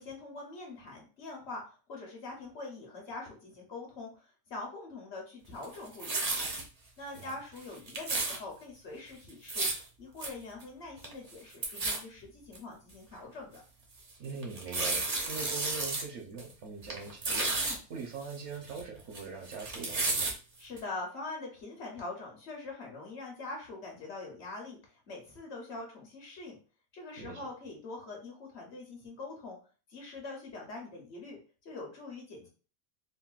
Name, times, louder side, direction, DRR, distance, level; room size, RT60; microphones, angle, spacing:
voice 1, 0.0-1.6 1.9-6.5 7.0-9.7 10.0-13.6 17.6-17.8 20.6-26.6 26.9-29.6 29.9-32.5, left 3 dB, 55° left, 0 dB, 1.0 m, -43 dB
sound 1, 5.6-6.6 7.2-7.3 7.6-8.4 9.3-9.8 10.2-10.3 10.6-10.7 11.0-11.3 11.6-12.0 12.5-12.6 13.2-13.3 14.4-16.0 16.4-16.5 16.8-17.8 18.2-19.2 19.5-20.3 20.8-20.9, right 3 dB, 45° right, 0.5 m, -32 dB
voice 2, 14.2-20.3 27.2-27.5, right 5 dB, 60° right, 1 dB, 0.9 m, -42 dB
3.7 x 2.1 x 2.3 m, 0.36 s
omnidirectional pair, 1.4 m